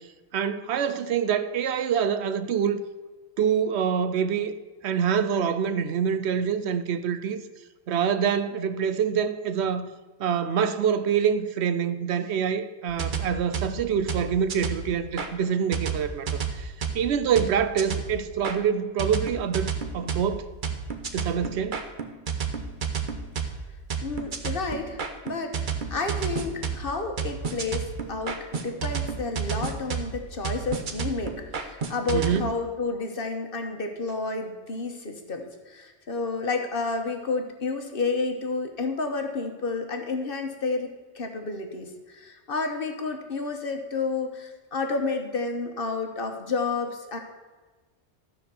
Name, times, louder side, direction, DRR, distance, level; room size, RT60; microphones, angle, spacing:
voice 1, 0.3-2.8 3.4-4.5 4.8-7.4 7.9-9.9 10.2-20.4 21.1-21.8 32.1-32.5, right 7 dB, 75° right, 0.9 m, -26 dB
sound 1, 12.9-15.3 15.7-18.6 19.0-32.4, right 6 dB, 50° right, 1.0 m, -32 dB
voice 2, 24.0-47.2, left 3 dB, 55° left, 1.3 m, -30 dB
13.0 x 4.6 x 6.9 m
omnidirectional pair, 1.1 m